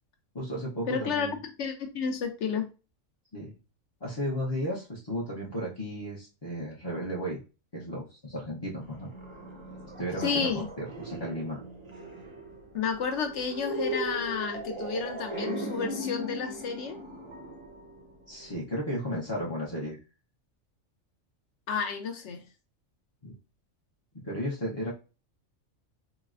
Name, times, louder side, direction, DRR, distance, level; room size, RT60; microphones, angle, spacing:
voice 1, 0.3-1.4 3.3-3.5 4.0-7.4 7.7-9.1 10.0-11.6 18.3-20.0 23.2-23.3 24.2-24.9, equal, 30° left, -6 dB, 0.5 m, -34 dB
voice 2, 0.9-1.3 1.6-2.7 10.2-10.6 12.7-17.0 21.7-22.4, left 6 dB, 70° left, 6 dB, 0.9 m, -31 dB
sound 1, 8.8-18.6, right 1 dB, 35° right, 0.5 m, -38 dB
4.0 x 2.1 x 2.4 m, 0.32 s
omnidirectional pair, 1.3 m